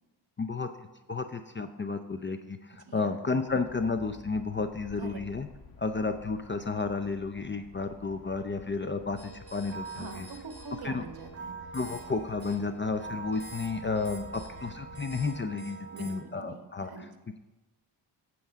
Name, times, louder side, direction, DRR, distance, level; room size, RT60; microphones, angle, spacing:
voice 1, 0.4-5.5 5.8-10.3 10.8-11.0 11.7-17.1, left 4 dB, 25° left, 8 dB, 0.5 m, -32 dB
voice 2, 2.8-3.2 5.0-5.2 9.9-11.6 15.9-17.1, right 4 dB, 50° right, 6 dB, 1.1 m, -44 dB
sound 1, 3.5-15.4, left 3 dB, 50° left, 1.4 m, -52 dB
sound 2, 9.2-16.2, right 4 dB, 30° right, 2.4 m, -45 dB
9.1 x 7.8 x 3.6 m, 1.1 s
cardioid pair, 75°, 47 cm